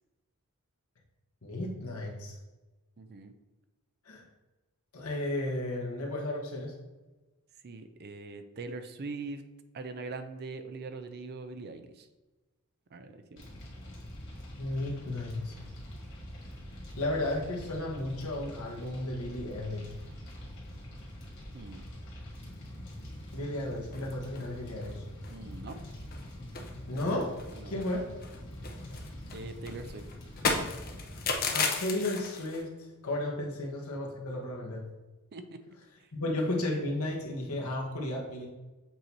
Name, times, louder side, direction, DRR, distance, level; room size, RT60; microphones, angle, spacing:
voice 1, 1.4-2.4 4.1-4.2 4.9-6.7 14.6-15.5 17.0-19.9 23.3-25.0 26.9-27.3 27.6-28.0 31.5-32.7 33.0-34.8 36.1-38.5, left 1 dB, 75° left, -1 dB, 1.3 m, -33 dB
voice 2, 3.0-3.3 7.6-9.4 9.7-12.1 12.9-13.4 21.5-21.8 25.3-25.8 27.6-27.8 29.3-30.0 35.3-35.6, right 3 dB, 45° right, 9 dB, 0.5 m, -42 dB
Fire, 13.4-31.4, left 1 dB, 60° left, 2.0 m, -45 dB
sound 1, 23.9-24.5 24.8-24.9 25.2-25.4 25.7-26.2 26.5-28.0 28.2-32.6, left 4 dB, 40° left, 0.7 m, -34 dB
7.6 x 2.8 x 4.5 m, 1.1 s
head